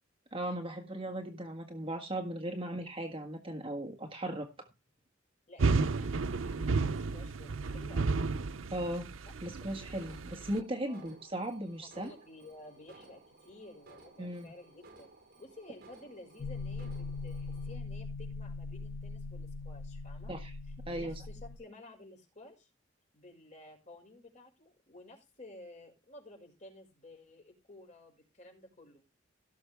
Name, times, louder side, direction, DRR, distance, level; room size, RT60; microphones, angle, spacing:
voice 1, 0.3-4.7 8.7-9.1 9.4-12.1 14.2-14.5 20.3-20.5 20.9-21.1, right 1 dB, 30° right, 4 dB, 1.7 m, -37 dB
voice 2, 5.5-8.2 10.8-11.1 11.6-11.7 12.0-15.1 15.4-20.4 20.7-22.7 23.1-29.0, left 2 dB, 40° left, 2 dB, 5.6 m, -53 dB
sound 1, 5.6-10.6, right 4 dB, 85° right, 0.6 m, -32 dB
Alarm, 10.0-17.8, right 2 dB, 50° right, 4.5 m, -58 dB
sound 2, 16.4-21.6, left 3 dB, 90° left, 0.8 m, -41 dB
17.0 x 7.2 x 3.4 m, 0.26 s
head